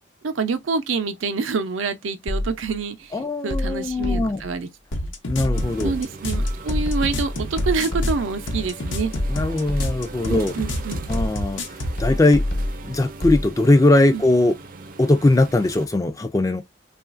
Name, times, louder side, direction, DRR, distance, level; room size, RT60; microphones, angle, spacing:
voice 1, 0.2-4.7 5.8-9.1 10.3-11.0 14.1-14.2, right 4 dB, 90° right, 0.6 m, -27 dB
sound 1, 2.3-2.8 3.5-4.5 5.4-6.0 6.3-8.4 9.1-10.2 11.1-11.6 12.0-13.5, left 1 dB, 50° left, 1.0 m, -27 dB
voice 2, 3.1-4.4 5.3-5.9 9.3-10.5 11.1-11.6 12.0-12.4 12.8-14.6 15.0-16.6, left 2 dB, 15° left, 0.3 m, -19 dB
sound 2, 4.9-12.0, left 1 dB, 80° left, 0.8 m, -28 dB
sound 3, 5.5-15.9, right 3 dB, 45° right, 0.4 m, -40 dB
3.0 x 2.4 x 2.4 m
head